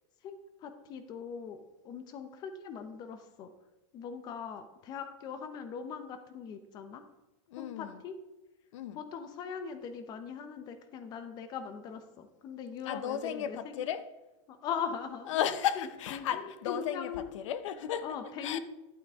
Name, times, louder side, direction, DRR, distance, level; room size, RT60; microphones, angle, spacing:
voice 1, 0.2-1.6 1.8-3.5 3.9-7.0 7.6-8.2 8.9-13.7 14.5-17.2 18.0-18.6, left 7 dB, 25° left, 0.7 m, -40 dB
voice 2, 7.5-8.0 8.7-9.0 12.8-14.1 15.3-18.6, left 10 dB, 70° left, 0.7 m, -34 dB
11.5 x 8.3 x 3.6 m
supercardioid pair, 170°, 16 cm